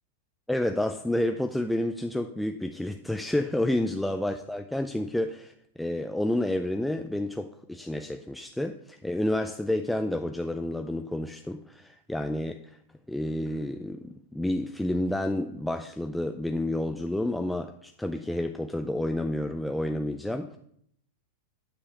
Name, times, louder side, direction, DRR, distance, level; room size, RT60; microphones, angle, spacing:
voice 1, 0.5-12.8 13.1-20.6, left 1 dB, 5° left, 6 dB, 0.4 m, -30 dB
8.7 x 5.4 x 6.8 m, 0.70 s
supercardioid pair, 145°, 0 cm